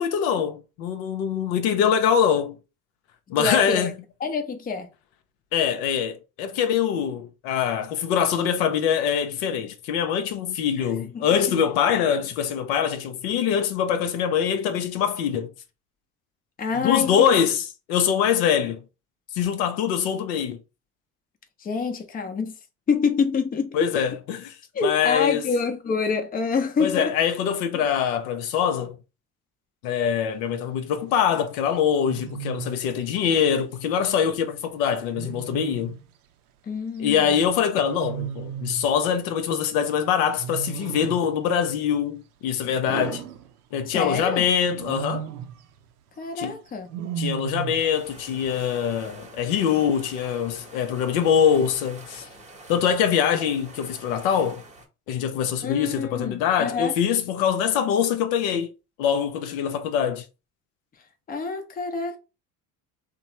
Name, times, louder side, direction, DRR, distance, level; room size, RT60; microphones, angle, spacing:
voice 1, 0.0-2.6 3.3-3.9 5.5-15.5 16.8-18.8 19.3-20.6 23.7-24.5 24.8-25.4 26.8-29.0 29.8-36.0 37.0-43.2 43.7-45.3 46.4-46.6 47.2-52.3 52.7-54.6 55.1-58.7 59.0-60.2, left 8 dB, 65° left, 0.6 m, -23 dB
voice 2, 3.4-3.9 4.2-4.9 10.8-10.9 11.1-11.6 16.6-17.4 21.6-22.5 22.9-23.8 24.7-27.1 27.7-27.8 36.7-37.4 43.9-44.4 46.2-46.9 55.6-56.9 61.3-62.2, left 5 dB, 20° left, 0.6 m, -27 dB
Wild animals, 30.5-30.9 32.1-32.8 35.1-36.0 37.8-38.9 40.4-41.3 42.9-44.0 44.7-45.6 46.9-47.9, right 9 dB, 80° right, 0.5 m, -34 dB
sound 1, 47.8-54.9, right 2 dB, 15° right, 0.9 m, -46 dB
3.0 x 2.0 x 2.8 m
hypercardioid pair, 65°, 44 cm